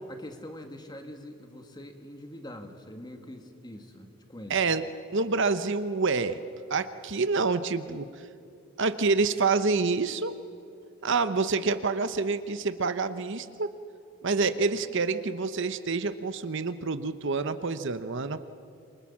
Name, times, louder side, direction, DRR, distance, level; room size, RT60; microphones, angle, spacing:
voice 1, 0.1-4.6, left 1 dB, 20° left, 5 dB, 2.1 m, -44 dB
voice 2, 4.5-4.8 5.1-6.4 6.7-8.1 8.8-10.3 11.0-13.7 14.2-18.5, right 4 dB, 55° right, 11 dB, 0.9 m, -27 dB
27.5 x 24.0 x 7.4 m, 2.6 s
head